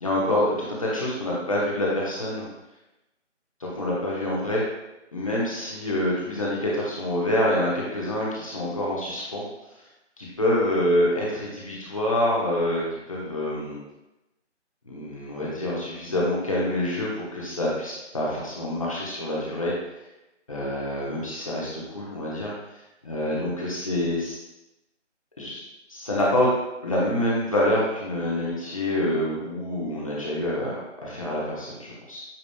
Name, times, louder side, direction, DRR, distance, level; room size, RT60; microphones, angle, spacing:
voice 1, 0.0-2.5 3.6-4.6 5.1-9.4 10.2-13.8 14.8-19.7 20.5-22.5 23.0-24.4 25.4-25.6 25.9-26.5 26.8-32.3, left 1 dB, 30° left, -5 dB, 1.0 m, -26 dB
8.6 x 4.8 x 2.2 m, 0.97 s
figure-of-eight pair, 170°, 37 cm